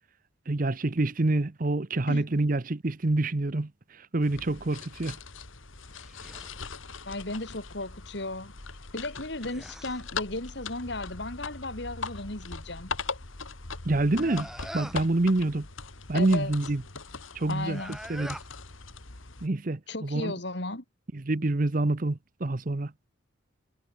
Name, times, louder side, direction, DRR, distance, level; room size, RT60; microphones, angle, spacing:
voice 1, 0.5-3.7 4.1-5.2 13.8-14.5 14.7-15.7 16.1-16.8 17.3-17.8 18.1-18.4 19.4-20.3 21.1-22.9, right 2 dB, 40° right, 0.8 m, -27 dB
sound 1, 4.2-19.5, left 4 dB, 80° left, 2.5 m, -40 dB
sound 2, 6.0-6.6 9.1-10.1 14.1-15.1 17.6-18.5, equal, ahead, 6.2 m, -43 dB
voice 2, 7.1-8.5 8.9-12.9 16.1-16.5 17.5-18.0 19.9-20.8, left 2 dB, 55° left, 2.8 m, -35 dB
head